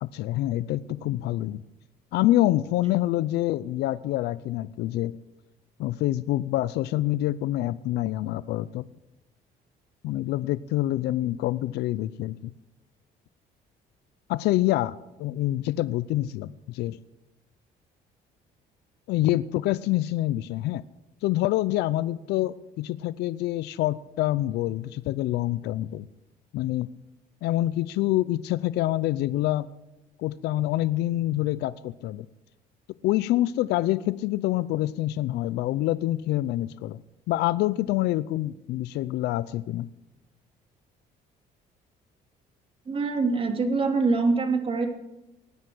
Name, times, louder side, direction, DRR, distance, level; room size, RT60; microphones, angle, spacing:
voice 1, 0.0-1.6 2.1-5.1 5.8-8.8 10.0-12.5 14.3-17.0 19.1-20.8 21.2-26.1 26.5-26.9 27.4-29.7 30.2-32.3 33.0-37.0 37.3-39.9, left 15 dB, 80° left, 17 dB, 0.5 m, -26 dB
voice 2, 42.9-44.9, right 4 dB, 35° right, 4 dB, 2.9 m, -24 dB
18.5 x 9.8 x 7.8 m, 0.95 s
cardioid pair, 110°, 17 cm